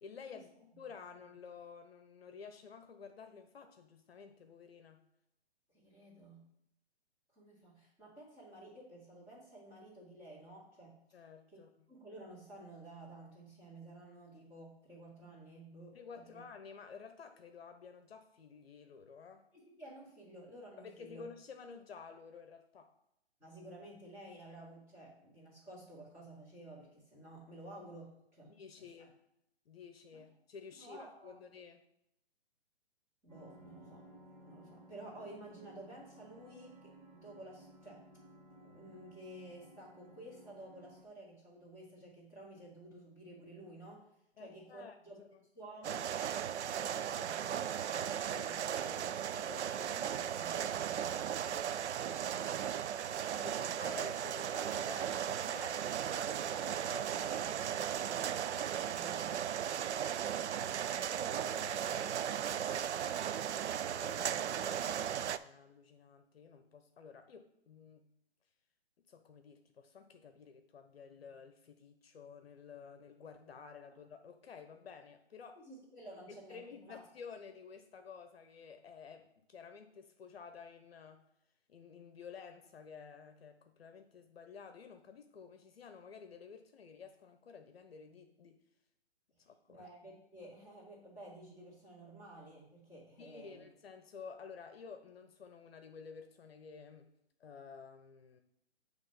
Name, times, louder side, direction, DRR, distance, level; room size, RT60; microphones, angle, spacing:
voice 1, 0.0-5.0 11.1-11.7 15.9-19.5 20.8-22.9 28.4-29.1 29.7-31.9 44.4-45.4 53.3-55.7 57.2-57.8 63.7-68.1 69.1-75.6 76.1-81.2 81.7-88.6 89.4-89.9 93.2-97.1 97.4-98.4, left 6 dB, 60° left, 7 dB, 0.8 m, -52 dB
voice 2, 5.7-6.5 7.3-11.0 11.5-11.6 11.9-16.4 19.5-21.3 23.4-29.1 30.1-30.2 30.8-31.4 33.2-34.0 34.4-38.0 38.6-44.0 44.4-45.2 45.5-47.5 47.8-49.0 49.3-52.3 53.3-53.9 55.5-55.8 56.0-57.7 58.0-59.4 60.6-63.2 75.6-77.1 89.7-93.7, right 1 dB, 10° right, -8 dB, 2.1 m, -53 dB
sound 1, 33.3-41.0, right 1 dB, 30° right, 1.3 m, -58 dB
sound 2, 45.8-65.4, right 9 dB, 90° right, 0.5 m, -36 dB
7.2 x 3.2 x 5.7 m, 0.80 s
hypercardioid pair, 155°, 33 cm